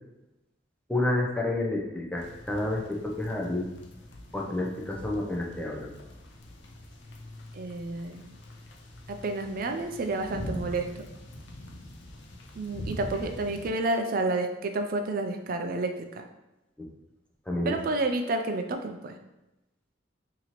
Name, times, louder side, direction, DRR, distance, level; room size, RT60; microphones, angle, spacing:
voice 1, 0.9-3.7 4.3-5.9 16.8-16.9 17.5-17.8, left 2 dB, 5° left, -2 dB, 0.5 m, -29 dB
sound 1, 2.2-13.7, left 1 dB, 70° left, 0.5 m, -43 dB
voice 2, 7.5-8.4 9.1-11.1 12.6-16.2 17.7-19.2, right 2 dB, 50° right, 6 dB, 0.4 m, -30 dB
4.1 x 2.8 x 2.9 m, 0.97 s
head